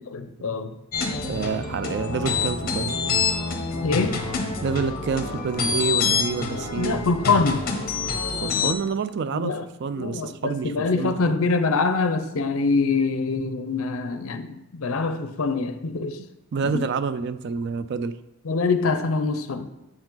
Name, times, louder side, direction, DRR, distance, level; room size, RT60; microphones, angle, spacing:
voice 1, 0.1-0.8 3.8-4.2 6.8-7.6 9.3-9.7 10.0-16.2 16.7-16.9 18.5-19.7, left 4 dB, 70° left, 0.5 m, -24 dB
sound 1, 0.9-8.7, left 5 dB, 40° left, 0.8 m, -27 dB
voice 2, 1.1-3.0 4.6-7.1 8.4-9.5 9.8-11.4 16.5-18.2, right 5 dB, 50° right, 0.3 m, -28 dB
7.7 x 4.7 x 3.9 m
head